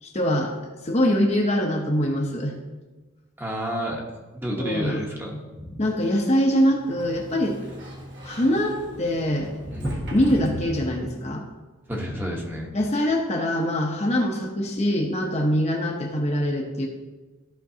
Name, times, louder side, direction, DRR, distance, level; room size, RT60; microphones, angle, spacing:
voice 1, 0.0-0.5 0.8-2.6 4.5-5.0 5.8-7.6 8.2-9.5 10.1-11.4 12.7-16.9, equal, 30° left, 1 dB, 0.8 m, -23 dB
voice 2, 3.4-4.0 4.3-5.8 9.7-10.0 11.9-12.7, equal, 10° right, -1 dB, 1.0 m, -30 dB
Sliding door, 6.7-11.4, equal, 55° right, 1.5 m, -37 dB
13.5 x 5.3 x 2.8 m, 1.2 s
head